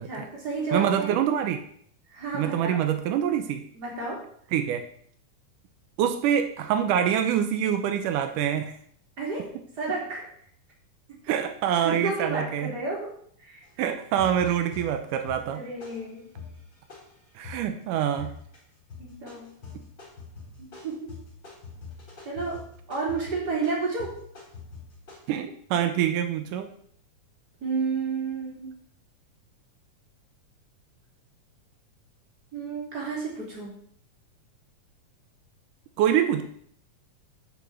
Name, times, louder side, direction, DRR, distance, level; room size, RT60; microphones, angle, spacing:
voice 1, 0.1-1.1 2.1-2.8 3.7-4.3 9.2-10.3 11.8-13.1 13.4-13.6 15.5-16.2 19.0-19.5 20.6-21.1 22.2-24.2 27.6-28.7 32.5-33.7, right 4 dB, 30° right, -4 dB, 4.1 m, -31 dB
voice 2, 0.7-1.6 2.3-3.6 4.5-4.8 6.0-8.8 11.3-12.7 13.8-15.6 17.4-18.3 25.3-26.7 36.0-36.4, right 9 dB, 90° right, 7 dB, 2.4 m, -25 dB
sound 1, 13.6-13.8 14.2-17.8 18.2-18.6 18.9-25.3, left 4 dB, 35° left, 4.1 m, -44 dB
8.8 x 6.4 x 7.7 m, 0.62 s
omnidirectional pair, 3.7 m